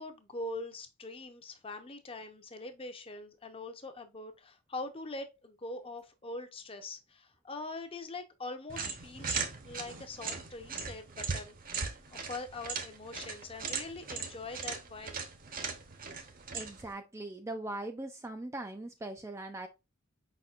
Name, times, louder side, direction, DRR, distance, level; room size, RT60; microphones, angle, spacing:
voice 1, 0.0-11.6 12.1-15.2, left 2 dB, 25° left, 0.6 m, -43 dB
sound 1, 8.7-16.9, right 5 dB, 40° right, 0.8 m, -39 dB
voice 2, 16.5-19.7, right 2 dB, 15° right, 0.3 m, -40 dB
5.1 x 4.2 x 2.4 m
head